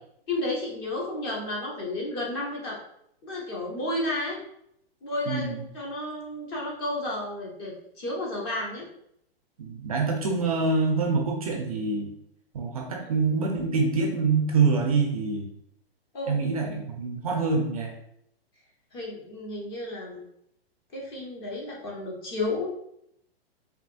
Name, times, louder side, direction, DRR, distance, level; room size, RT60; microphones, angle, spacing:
voice 1, 0.3-2.8 3.2-4.4 5.0-8.8 16.1-16.4 18.9-20.2 20.9-22.7, left 2 dB, 25° left, -3 dB, 0.8 m, -32 dB
voice 2, 5.3-5.6 9.6-12.1 12.5-15.5 16.3-17.9, right 4 dB, 35° right, 2 dB, 0.4 m, -25 dB
4.9 x 2.9 x 2.5 m, 0.75 s
hypercardioid pair, 170°, 31 cm